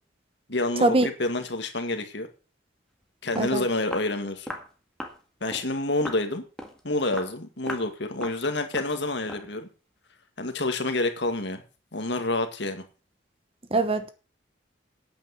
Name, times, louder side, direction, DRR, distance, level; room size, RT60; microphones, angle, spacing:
voice 1, 0.5-2.3 3.2-4.5 5.4-6.4 6.8-9.7 10.4-11.6 11.9-12.8, left 2 dB, 60° left, 7 dB, 2.0 m, -28 dB
Walk footsteps, 3.0-3.1 3.4-3.5 3.9-4.1 4.5-4.7 5.0-5.2 5.5-5.7 6.1-6.3 6.6-6.8 7.1-7.4 7.7-7.9 8.2-8.4 8.7-9.0 9.3-9.5, left 1 dB, 5° left, 1.8 m, -37 dB
voice 2, 13.7-14.1, right 2 dB, 30° right, 11 dB, 1.1 m, -22 dB
9.1 x 9.0 x 7.1 m, 0.35 s
head